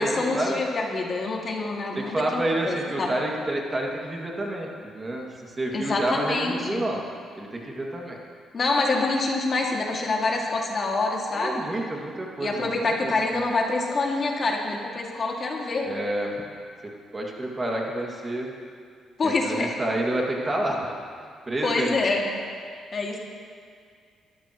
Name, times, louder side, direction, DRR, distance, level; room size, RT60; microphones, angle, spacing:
voice 1, 0.0-3.1 5.7-6.8 8.5-11.6 12.4-15.9 19.2-19.8 21.6-22.4 22.9-23.2, left 3 dB, 45° left, -1 dB, 2.2 m, -26 dB
voice 2, 2.0-7.0 7.4-8.2 11.3-13.1 15.8-16.4 17.1-18.5 19.2-20.9 21.5-22.0, right 1 dB, 25° right, -1 dB, 2.2 m, -29 dB
22.0 x 13.0 x 3.1 m, 2.1 s
cardioid pair, 90°, 0 cm